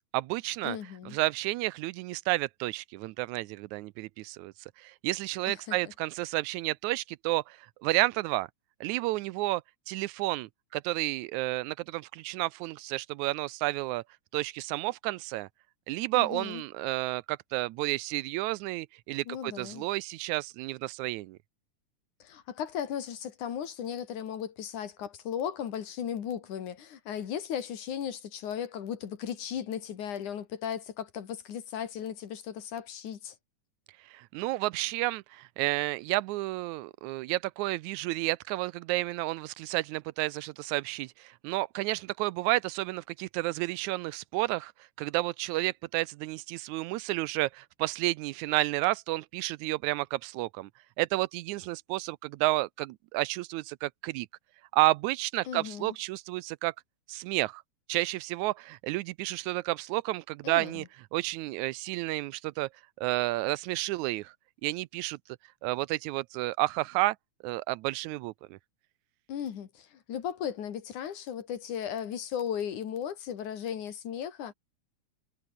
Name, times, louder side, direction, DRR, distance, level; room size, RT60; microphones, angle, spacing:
voice 1, 0.1-0.8 1.1-8.5 8.8-9.6 9.9-14.0 14.3-15.5 15.9-21.4 34.1-44.7 45.0-50.7 51.0-54.3 54.7-56.7 57.1-57.6 57.9-60.9 61.1-62.7 63.0-64.3 64.6-65.2 65.6-67.2 67.4-68.6, right 19 dB, 80° right, 1.9 m, -31 dB
voice 2, 0.6-1.2 5.5-5.8 16.1-16.6 19.3-19.9 22.2-33.4 55.5-56.0 60.4-60.9 69.3-74.5, left 9 dB, 90° left, 3.6 m, -36 dB
omnidirectional pair, 3.4 m